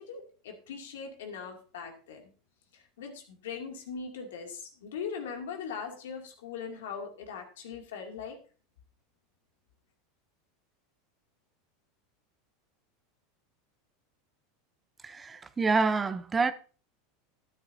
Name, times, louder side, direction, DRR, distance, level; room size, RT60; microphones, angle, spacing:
voice 1, 0.0-2.3 2.7-8.4, left 6 dB, 90° left, 2.5 m, -40 dB
voice 2, 15.0-16.5, right 4 dB, 20° right, 0.7 m, -27 dB
12.5 x 9.5 x 2.7 m
supercardioid pair, 125°, 0 cm